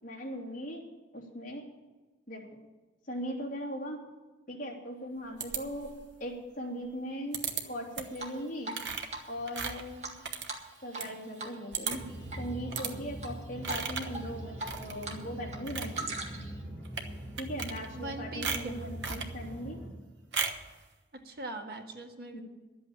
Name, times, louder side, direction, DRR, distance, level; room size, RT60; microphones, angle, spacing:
voice 1, 0.0-0.9 1.1-1.6 2.3-2.4 3.0-4.1 4.5-5.9 6.2-8.7 9.3-10.1 10.8-12.1 12.4-16.1 17.4-19.8 22.3-22.4, equal, 45° left, -2 dB, 2.8 m, -39 dB
sound 1, 5.4-6.1 7.3-7.6 7.9-8.2 8.7-11.1 11.4-11.5 11.7-12.2 12.7-12.9 13.6-14.2 14.6-15.2 15.5-16.0 16.8-17.1 17.4-18.1 18.4-19.3 20.3-20.7, right 6 dB, 75° right, 1.2 m, -36 dB
Drip, 8.2-8.8 9.1-9.2 9.6-11.1 11.4-11.6 11.8-12.4 12.8-13.3 13.7-13.8 14.1-15.2 15.5-16.6, right 2 dB, 35° right, 1.8 m, -39 dB
sound 2, 11.9-19.9, right 1 dB, 10° left, 4.8 m, -43 dB
voice 2, 17.9-18.9 21.1-22.4, right 2 dB, 55° right, 3 dB, 1.6 m, -41 dB
11.5 x 8.4 x 8.8 m, 1.2 s
head